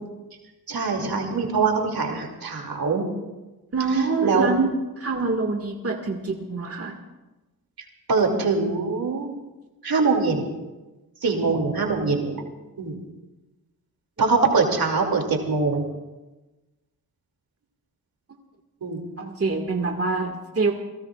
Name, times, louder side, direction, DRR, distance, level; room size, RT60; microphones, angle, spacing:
voice 1, 0.7-3.1 4.2-4.5 8.1-9.3 9.8-10.5 11.2-12.4 12.8-13.0 14.2-15.8 18.8-19.0, right 4 dB, 70° right, 2 dB, 2.8 m, -23 dB
voice 2, 3.7-7.0 19.2-20.7, right 4 dB, 40° right, 2 dB, 1.9 m, -25 dB
28.0 x 18.0 x 2.5 m, 1.1 s
cardioid pair, 55°, 37 cm